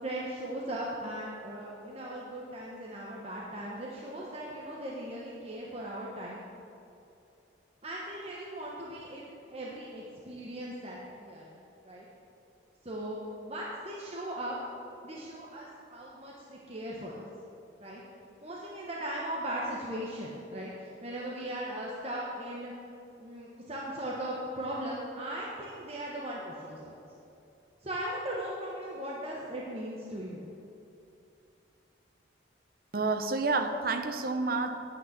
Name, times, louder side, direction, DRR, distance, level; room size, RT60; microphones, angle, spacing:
voice 1, 0.0-6.4 7.8-12.1 12.8-13.2 13.4-14.6 15.0-17.3 17.8-18.0 18.4-22.7 23.2-26.9 27.8-30.5, right 1 dB, 35° right, -4 dB, 1.2 m, -38 dB
voice 2, 32.9-34.8, right 3 dB, 50° right, 8 dB, 0.8 m, -29 dB
9.4 x 8.7 x 7.3 m, 2.7 s
head